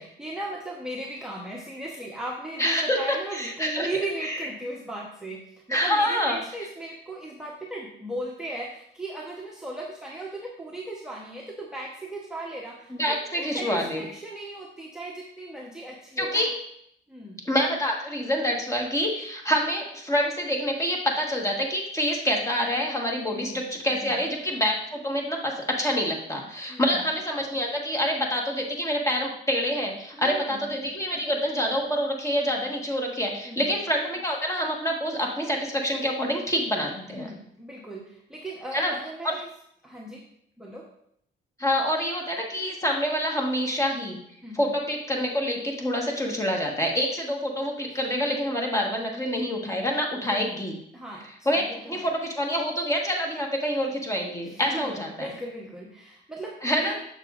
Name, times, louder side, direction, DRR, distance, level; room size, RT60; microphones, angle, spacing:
voice 1, 0.0-16.5 17.1-17.4 23.2-24.3 26.7-27.0 30.1-30.6 33.4-33.7 37.1-39.5 39.8-40.2 40.6-40.9 44.4-44.7 47.9-48.3 50.2-50.4 50.9-51.2 51.6-52.0 54.4-57.0, right 1 dB, 5° right, -2 dB, 0.9 m, -37 dB
voice 2, 2.6-3.9 4.2-4.4 5.7-6.4 12.9-14.0 16.2-16.5 17.4-37.3 38.7-38.9 39.2-39.4 41.6-44.2 44.5-50.7 51.4-55.3 56.6-57.0, equal, 15° left, 0 dB, 1.4 m, -27 dB
6.8 x 6.6 x 2.5 m, 0.70 s
cardioid pair, 90°, 20 cm